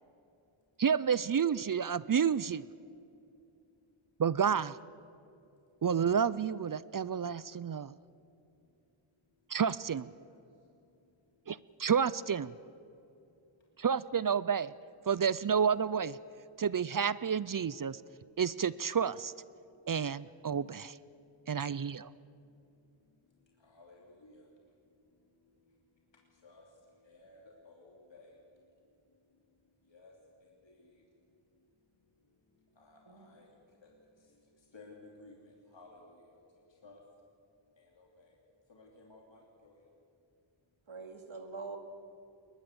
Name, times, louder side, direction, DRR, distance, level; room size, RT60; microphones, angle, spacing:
voice 1, 0.8-2.6 4.2-4.7 5.8-7.9 9.5-10.1 11.5-12.5 13.8-14.7 15.1-16.2 16.6-18.0 18.4-19.3 19.9-21.0 21.5-22.1, right 7 dB, 45° right, 19 dB, 0.5 m, -30 dB
voice 2, 23.6-24.5 26.4-26.7 27.0-28.4 29.9-30.1 30.4-30.9 32.8-33.5 33.8-33.9 34.7-36.4 36.8-37.0 37.8-38.4 38.7-39.8, left 2 dB, 60° left, -1 dB, 2.9 m, -56 dB
voice 3, 40.9-41.8, right 4 dB, 70° right, 5 dB, 2.5 m, -44 dB
21.5 x 20.5 x 7.9 m, 2.6 s
wide cardioid pair, 100°, 49 cm